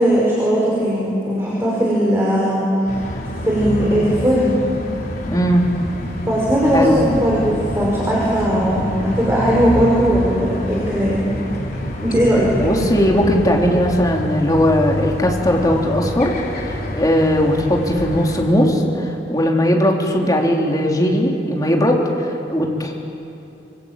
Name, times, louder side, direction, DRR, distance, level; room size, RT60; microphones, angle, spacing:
voice 1, 0.0-2.7 3.4-4.6 6.3-11.2 12.0-12.5, equal, 15° right, -5 dB, 5.4 m, -18 dB
sound 1, 2.9-18.4, equal, 55° left, 4.9 m, -27 dB
voice 2, 5.2-5.6 6.7-7.0 8.5-8.7 12.6-16.3 16.6-22.9, equal, 20° left, 0 dB, 3.3 m, -18 dB
27.0 x 24.5 x 9.0 m, 2.7 s
head